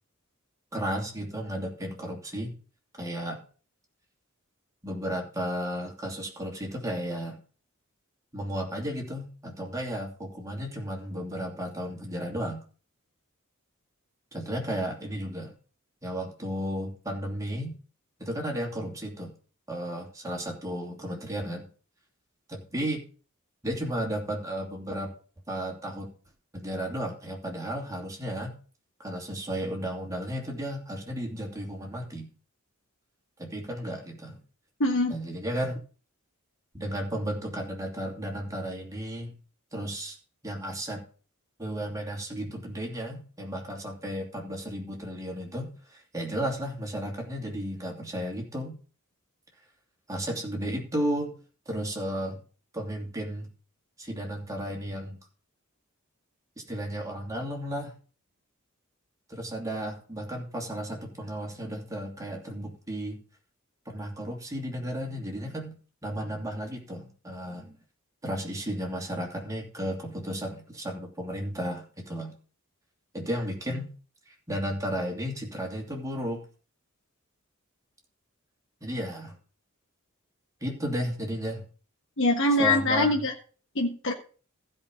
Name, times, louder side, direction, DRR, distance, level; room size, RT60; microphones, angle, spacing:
voice 1, 0.7-2.5 3.0-3.4 4.8-7.4 8.3-12.6 14.3-15.5 16.0-17.7 18.2-19.3 19.7-21.7 22.5-23.0 23.6-25.1 25.5-26.1 26.5-28.5 29.0-32.3 33.4-34.4 35.1-35.8 36.7-39.3 39.7-40.2 40.4-41.0 41.6-48.8 50.1-51.3 51.7-52.4 52.7-53.5 54.0-55.2 56.7-57.9 59.3-63.2 63.9-65.7 66.0-67.8 68.2-72.4 73.1-73.9 74.3-76.4 78.8-79.4 80.6-81.7 82.6-83.3, equal, 15° right, 0 dB, 2.7 m, -33 dB
voice 2, 34.8-35.1 82.2-83.3 83.7-84.1, left 2 dB, 65° left, 1 dB, 1.6 m, -23 dB
15.0 x 5.4 x 5.2 m, 0.38 s
head